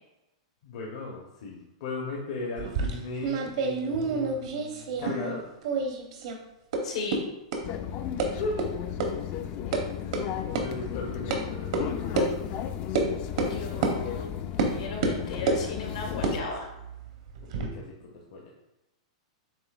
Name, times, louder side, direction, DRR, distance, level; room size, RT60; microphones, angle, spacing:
voice 1, 0.6-5.5 8.3-8.6 10.4-12.4 17.5-18.5, left 3 dB, 60° left, -1 dB, 0.8 m, -37 dB
sound 1, 2.6-5.4 5.6-6.4 6.7-6.8 7.1-7.2 7.5-7.6 8.2-8.3 8.6-8.7 9.0-9.1 9.4-9.8 10.1-10.2 10.6-10.7 11.3-11.4 11.7-11.8 12.2-12.3 13.0-13.1 13.4-13.5 13.8-14.0 14.6-14.7 15.0-15.6 16.1-17.7, right 3 dB, 65° right, 0.8 m, -28 dB
voice 2, 6.8-7.2 13.4-14.3 14.7-16.7, left 3 dB, 85° left, 0 dB, 1.4 m, -36 dB
sound 2, 7.6-16.4, left 10 dB, 40° left, 0.3 m, -34 dB
7.4 x 2.9 x 2.4 m, 0.93 s
hypercardioid pair, 140°, 3 cm